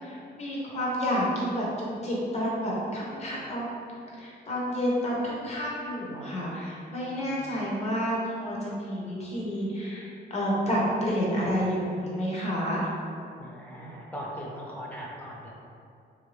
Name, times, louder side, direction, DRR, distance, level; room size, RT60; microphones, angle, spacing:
voice 1, 0.0-3.8 4.1-12.9, equal, 35° left, -5 dB, 0.8 m, -30 dB
voice 2, 13.4-15.5, equal, 10° left, -4 dB, 0.5 m, -39 dB
3.3 x 2.6 x 3.1 m, 2.5 s
cardioid pair, 165°, 18 cm